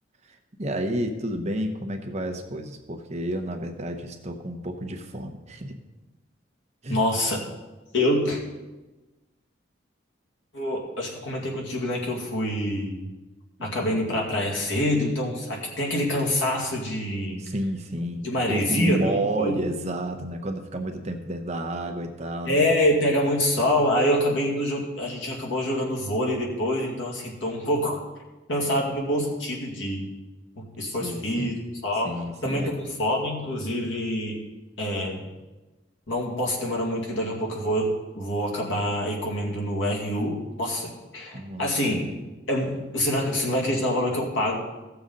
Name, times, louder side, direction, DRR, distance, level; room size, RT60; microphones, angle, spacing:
voice 1, 0.3-5.7 6.8-7.0 13.6-13.7 17.4-22.7 30.8-31.5 32.0-32.7 41.3-42.2, right 1 dB, 35° right, 4 dB, 1.0 m, -31 dB
voice 2, 6.9-7.4 7.9-8.4 10.5-13.0 13.6-17.4 18.2-19.5 22.4-28.0 28.5-30.1 30.6-34.4 34.8-35.2 36.1-42.1 42.5-44.6, left 1 dB, 85° left, -2 dB, 2.3 m, -26 dB
16.0 x 7.0 x 3.9 m, 1.1 s
head